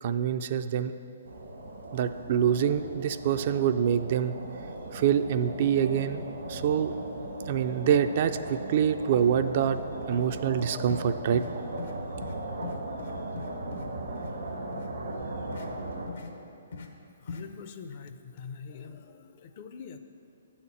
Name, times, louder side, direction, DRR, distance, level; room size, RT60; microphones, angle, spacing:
voice 1, 0.0-0.9 1.9-4.3 4.9-6.2 6.5-6.9 7.5-9.8 10.1-11.4, right 8 dB, 45° right, 10 dB, 0.3 m, -26 dB
sound 1, 1.2-16.1, right 2 dB, 85° right, 1.4 m, -38 dB
sound 2, 8.7-8.8 9.1-9.3 9.6-9.8 10.1-10.3 10.9-11.1 11.3-11.5 11.8-12.0 12.2-12.3 12.6-13.8 14.2-14.3 14.7-14.9 15.5-15.7 16.1-16.3 16.7-16.9 17.3-17.4, left 5 dB, 70° left, 0.8 m, -40 dB
voice 2, 17.2-20.0, left 6 dB, 40° left, 8 dB, 0.5 m, -44 dB
8.4 x 4.3 x 7.1 m, 2.6 s
hypercardioid pair, 150°, 0 cm